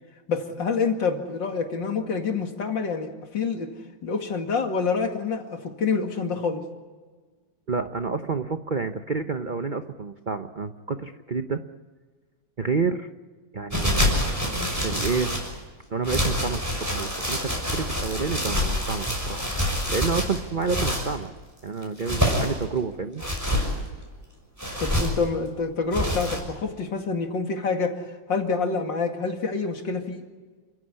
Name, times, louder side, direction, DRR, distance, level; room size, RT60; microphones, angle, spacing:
voice 1, 0.3-3.7 4.0-6.6 14.6-14.7 24.8-30.2, left 4 dB, 60° left, 4 dB, 2.9 m, -27 dB
voice 2, 7.7-11.6 12.6-13.1 13.5-14.4 14.8-15.3 15.9-16.6 16.9-21.3 21.6-23.2, right 4 dB, 70° right, 8 dB, 0.4 m, -29 dB
sound 1, 13.7-15.5 16.0-21.1 21.8-22.6 23.2-23.7 24.6-25.2 25.9-26.4, equal, 5° right, 6.2 m, -26 dB
29.0 x 16.0 x 9.8 m, 1.4 s
omnidirectional pair, 2.3 m